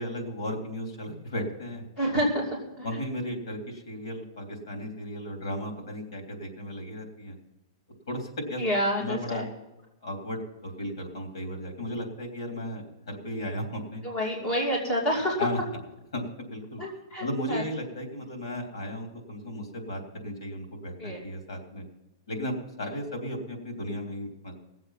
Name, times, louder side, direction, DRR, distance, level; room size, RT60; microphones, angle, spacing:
voice 1, 0.0-1.8 2.8-7.3 8.1-8.6 9.0-9.4 10.0-14.0 15.4-15.6 16.1-16.8 17.2-21.9 22.3-24.5, equal, 85° left, 3 dB, 3.3 m, -35 dB
voice 2, 2.0-3.0 8.6-9.5 14.0-15.5 16.8-17.6 21.0-21.2, equal, 20° left, -1 dB, 2.6 m, -28 dB
18.0 x 7.6 x 5.7 m, 0.99 s
hypercardioid pair, 175°, 3 cm